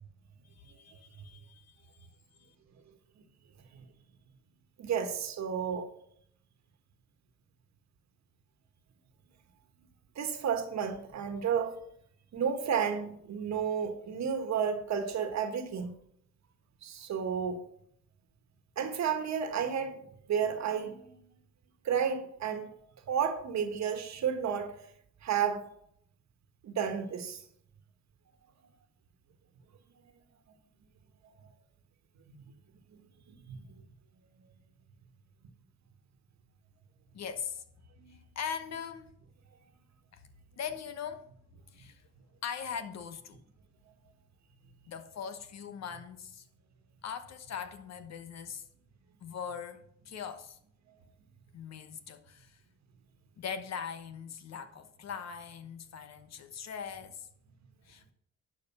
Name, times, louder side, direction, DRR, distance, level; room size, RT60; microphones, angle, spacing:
voice 1, 0.6-1.7 37.1-37.6 38.3-39.1 40.1-40.2 40.6-41.3 41.7-42.0 42.4-43.4 44.9-46.4 47.0-48.7 49.2-50.6 51.5-52.6 53.4-57.3 57.9-58.1, left 7 dB, 60° left, 1.1 m, -41 dB
voice 2, 4.8-5.9 10.1-11.8 12.3-15.9 16.8-17.6 18.8-20.0 20.3-21.2 21.8-22.7 23.1-24.7 25.2-25.6 26.6-27.4 32.3-32.4 33.5-33.6 38.0-38.1, right 7 dB, 65° right, 1.5 m, -32 dB
11.5 x 4.9 x 5.9 m
cardioid pair, 90°, 30 cm